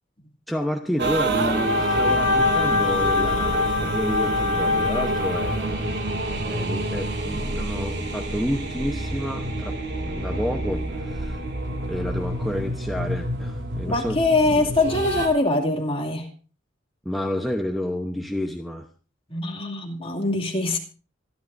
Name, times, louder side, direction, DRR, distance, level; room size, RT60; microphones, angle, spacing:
voice 1, 0.5-5.9 6.4-9.8 10.1-11.4 11.9-14.6 17.0-18.9, equal, ahead, 1.0 m, -30 dB
sound 1, 1.0-15.3, left 1 dB, 60° right, 2.6 m, -25 dB
voice 2, 13.8-16.3 19.3-20.8, left 2 dB, 30° left, 2.6 m, -23 dB
26.0 x 11.5 x 2.7 m
head